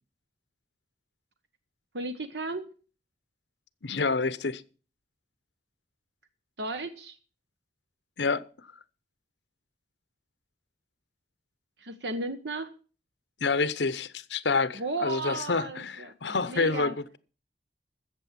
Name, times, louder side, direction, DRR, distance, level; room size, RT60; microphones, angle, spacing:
voice 1, 1.9-2.7 6.6-7.2 11.8-12.7 14.7-16.9, right 2 dB, 80° right, 1.2 m, -34 dB
voice 2, 3.8-4.6 8.2-8.4 13.4-17.2, left 4 dB, 85° left, 0.9 m, -28 dB
14.0 x 7.9 x 7.4 m
head